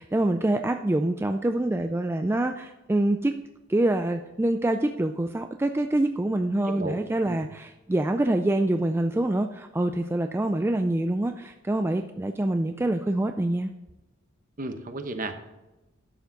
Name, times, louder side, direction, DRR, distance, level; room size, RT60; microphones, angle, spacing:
voice 1, 0.0-3.3 3.7-13.7, right 1 dB, 10° right, 6 dB, 0.3 m, -25 dB
voice 2, 6.6-7.0 7.3-7.4 14.6-15.4, right 2 dB, 40° right, 8 dB, 0.9 m, -33 dB
11.5 x 6.9 x 3.9 m, 1.0 s
head